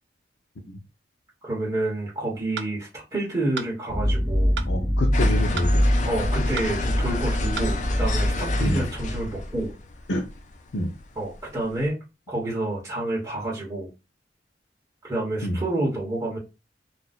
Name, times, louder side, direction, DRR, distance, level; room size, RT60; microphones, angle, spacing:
voice 1, 1.4-4.6 6.0-9.7 11.1-12.0 12.3-13.9 15.0-16.4, right 2 dB, 20° right, 1.1 m, -29 dB
sound 1, 2.6-2.7 3.6-3.7 4.6-4.7 5.6-5.7 6.6-6.7 7.6-7.7, right 5 dB, 75° right, 0.5 m, -33 dB
sound 2, 3.9-9.6, equal, 15° left, 0.8 m, -24 dB
voice 2, 4.7-5.9 8.6-8.8 10.1-10.2 10.7-10.9 15.4-15.6, left 1 dB, 90° left, 0.6 m, -27 dB
sound 3, 5.1-11.8, left 3 dB, 45° left, 0.5 m, -32 dB
2.5 x 2.2 x 4.0 m
head